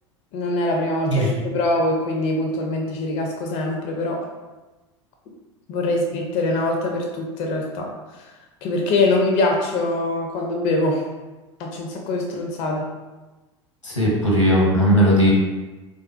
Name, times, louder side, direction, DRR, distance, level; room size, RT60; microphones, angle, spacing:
voice 1, 0.3-4.2 5.7-7.9 8.2-8.3 8.6-11.0 11.6-12.9, left 2 dB, 45° left, 1 dB, 0.5 m, -23 dB
voice 2, 13.8-15.3, equal, 90° left, -3 dB, 0.8 m, -17 dB
3.3 x 2.7 x 2.3 m, 1.2 s
figure-of-eight pair, 80°, 16 cm